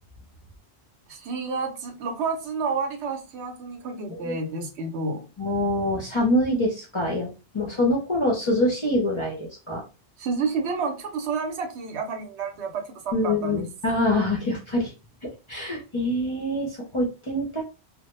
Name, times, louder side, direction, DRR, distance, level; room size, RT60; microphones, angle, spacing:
voice 1, 1.1-5.3 10.2-13.7, right 4 dB, 75° right, 0.9 m, -30 dB
voice 2, 5.4-9.8 13.1-14.9 15.2-17.6, left 1 dB, 40° left, 0.5 m, -25 dB
2.1 x 2.0 x 3.0 m
omnidirectional pair, 1.1 m